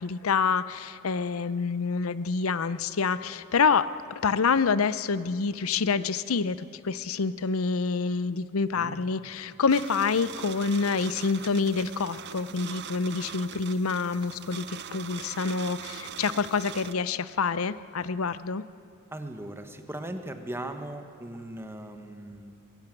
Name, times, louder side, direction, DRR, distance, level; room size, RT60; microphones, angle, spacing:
voice 1, 0.0-3.9 4.2-18.6, left 5 dB, 85° left, 15 dB, 0.7 m, -27 dB
sound 1, 9.7-16.9, right 8 dB, 55° right, 0.8 m, -41 dB
voice 2, 19.1-22.5, right 1 dB, 10° right, 7 dB, 1.4 m, -38 dB
22.0 x 16.0 x 9.1 m, 2.7 s
head